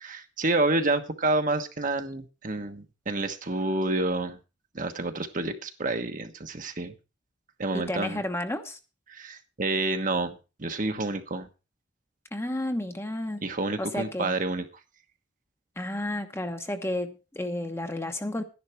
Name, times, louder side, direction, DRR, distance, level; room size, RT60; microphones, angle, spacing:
voice 1, 0.0-4.4 4.7-6.9 7.6-8.2 9.1-11.5 13.4-14.6, right 2 dB, 45° right, 7 dB, 1.2 m, -29 dB
voice 2, 7.7-8.8 12.3-13.4 13.8-14.3 15.8-18.4, left 1 dB, 15° left, 7 dB, 1.1 m, -31 dB
12.0 x 10.5 x 4.5 m, 0.30 s
head